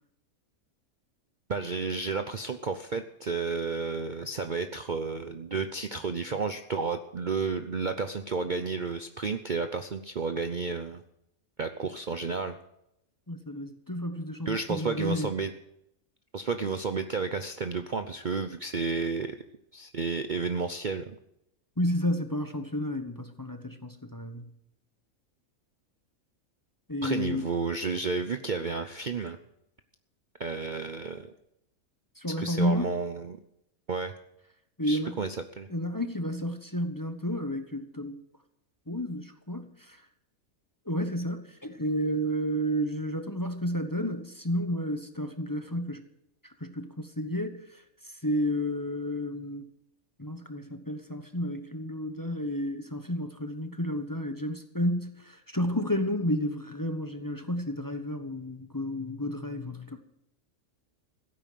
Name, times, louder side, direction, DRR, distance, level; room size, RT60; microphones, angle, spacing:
voice 1, 1.5-11.0 11.6-12.6 14.5-15.5 16.3-19.4 19.7-21.2 27.0-29.4 30.4-31.3 32.4-33.4 33.9-34.1 34.8-35.7, right 4 dB, 45° right, 8 dB, 0.7 m, -32 dB
voice 2, 13.3-15.3 21.8-24.5 26.9-27.5 32.2-32.9 34.8-35.2 35.7-38.2 38.9-40.0 40.9-46.0 46.6-49.7 50.2-60.0, equal, 15° left, 7 dB, 1.0 m, -31 dB
16.0 x 9.1 x 7.6 m, 0.79 s
omnidirectional pair, 1.5 m